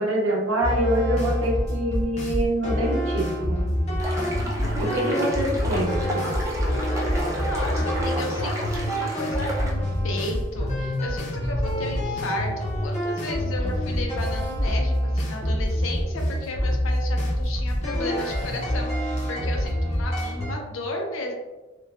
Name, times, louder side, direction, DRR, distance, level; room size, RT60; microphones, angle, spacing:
voice 1, 0.0-3.6 4.8-6.3, right 1 dB, 85° right, -2 dB, 0.6 m, -25 dB
sound 1, 0.6-20.5, equal, 35° left, 0.5 m, -26 dB
sound 2, 4.0-9.7, equal, 15° right, 0.3 m, -34 dB
sound 3, 4.1-8.5, left 1 dB, 40° right, 0.9 m, -34 dB
voice 2, 7.4-21.3, left 2 dB, 80° left, 1 dB, 0.5 m, -34 dB
3.0 x 2.2 x 2.3 m, 1.1 s
head